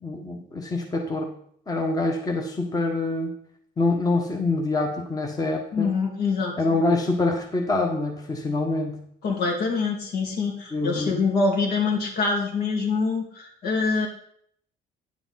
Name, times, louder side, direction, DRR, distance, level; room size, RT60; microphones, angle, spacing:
voice 1, 0.0-1.3 1.7-3.3 3.8-5.9 6.6-9.0 10.7-11.3, left 2 dB, 20° left, 2 dB, 1.2 m, -25 dB
voice 2, 5.7-6.6 9.2-14.1, left 4 dB, 70° left, 0 dB, 2.4 m, -25 dB
9.4 x 7.0 x 4.1 m, 0.66 s
cardioid pair, 110°, 17 cm